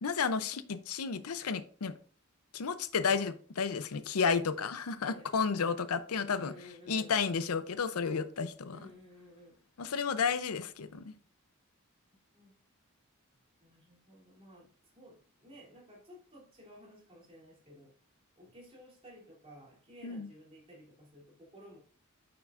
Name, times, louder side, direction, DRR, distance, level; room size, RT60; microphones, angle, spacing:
voice 1, 0.0-1.9 2.5-6.5 6.9-8.8 9.8-11.2 20.0-20.3, left 5 dB, 85° left, 0.6 m, -32 dB
voice 2, 5.0-5.8 6.4-7.1 8.7-9.7 12.3-12.6 13.6-17.9 18.4-21.8, equal, 25° right, 3.0 m, -55 dB
9.5 x 6.0 x 2.5 m
head